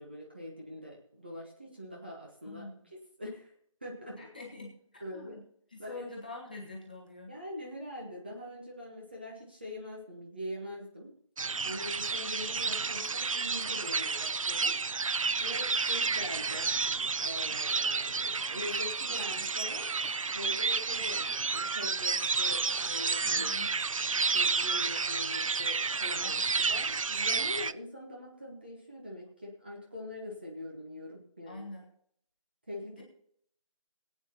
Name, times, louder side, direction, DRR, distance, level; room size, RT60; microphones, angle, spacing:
voice 1, 0.0-2.7 3.2-3.5 3.8-4.3 5.0-5.4 5.8-6.1 7.3-11.1 11.6-14.8 15.4-16.7 17.2-19.9 20.3-23.6 24.1-31.7 32.7-33.0, left 1 dB, 20° right, -2 dB, 1.1 m, -43 dB
voice 2, 2.4-2.9 4.1-5.4 5.7-7.4 23.3-23.8 26.2-26.5 31.5-31.9 33.0-33.1, left 3 dB, 15° left, -2 dB, 1.3 m, -45 dB
sound 1, 11.4-27.7, right 4 dB, 70° right, 0.5 m, -31 dB
21.0 x 8.7 x 2.9 m, 0.66 s
figure-of-eight pair, 175°, 18 cm